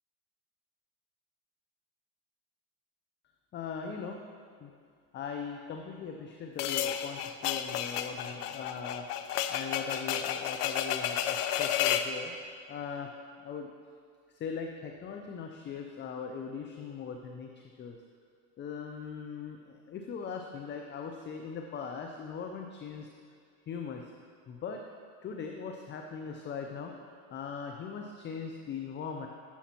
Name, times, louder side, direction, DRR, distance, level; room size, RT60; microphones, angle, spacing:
voice 1, 3.5-4.2 4.6-4.7 5.1-12.3 12.7-13.1 13.4-13.7 14.3-18.0 18.6-23.1 23.7-24.1 24.5-24.8 25.2-29.3, left 6 dB, 25° left, 3 dB, 0.5 m, -40 dB
sound 1, 6.6-12.1, left 10 dB, 90° left, 0.6 m, -32 dB
11.5 x 7.0 x 2.9 m, 2.2 s
hypercardioid pair, 95°, 45 cm